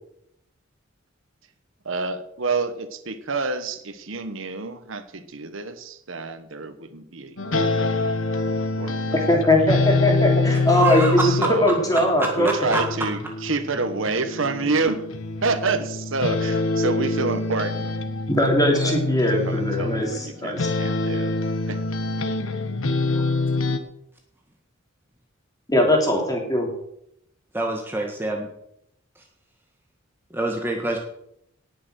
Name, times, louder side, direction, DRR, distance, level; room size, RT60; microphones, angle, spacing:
voice 1, 1.8-7.4 7.7-8.0 8.8-9.2 10.9-11.7 12.4-15.0 15.4-17.9 18.7-21.3 21.7-21.8, right 3 dB, 75° right, 9 dB, 1.2 m, -28 dB
sound 1, 7.4-20.3 20.6-23.8, left 3 dB, 80° left, 1.3 m, -25 dB
voice 2, 9.3-12.8 18.3-20.7 25.7-26.7, left 1 dB, 20° left, 1 dB, 3.3 m, -20 dB
voice 3, 10.7-11.2 12.2-12.3 12.7-12.8 23.1-23.2 27.5-28.5 30.3-31.0, right 2 dB, 10° right, 0 dB, 1.6 m, -26 dB
18.0 x 6.7 x 6.3 m, 0.76 s
head